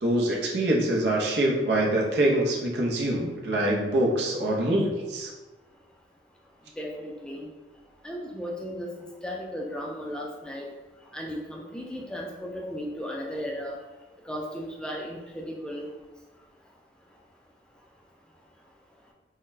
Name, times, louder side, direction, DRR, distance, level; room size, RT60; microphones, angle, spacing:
voice 1, 0.0-5.3, right 1 dB, 70° right, -2 dB, 0.7 m, -25 dB
voice 2, 6.8-7.4 8.0-8.9 9.2-10.6 11.1-13.8 14.3-15.8, equal, 5° left, -1 dB, 0.3 m, -35 dB
3.7 x 2.2 x 2.6 m, 1.2 s
head